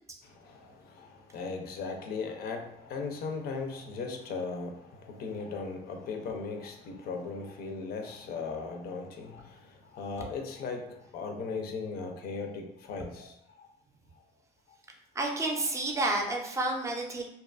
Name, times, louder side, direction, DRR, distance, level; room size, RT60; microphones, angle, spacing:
voice 1, 0.4-9.6 9.9-13.7, left 4 dB, 65° left, 4 dB, 0.5 m, -38 dB
voice 2, 15.1-17.2, right 2 dB, 15° right, 1 dB, 0.5 m, -30 dB
2.7 x 2.3 x 2.4 m, 0.83 s
cardioid pair, 110°, 17 cm